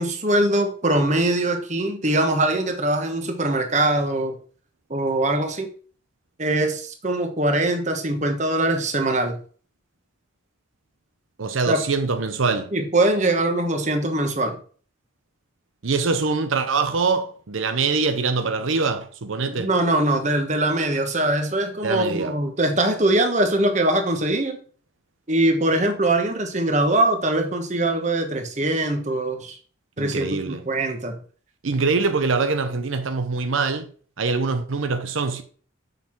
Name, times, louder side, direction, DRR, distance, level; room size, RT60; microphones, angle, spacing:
voice 1, 0.0-4.4 4.9-5.7 6.4-9.4 11.7-11.8 12.7-14.6 19.5-24.6 25.3-29.6 30.0-31.2, right 1 dB, 35° right, 1.2 m, -22 dB
voice 2, 11.4-12.7 15.8-19.7 21.8-22.4 30.0-30.6 31.6-33.9 34.2-35.4, right 4 dB, 85° right, 0.7 m, -24 dB
7.1 x 5.7 x 4.5 m
head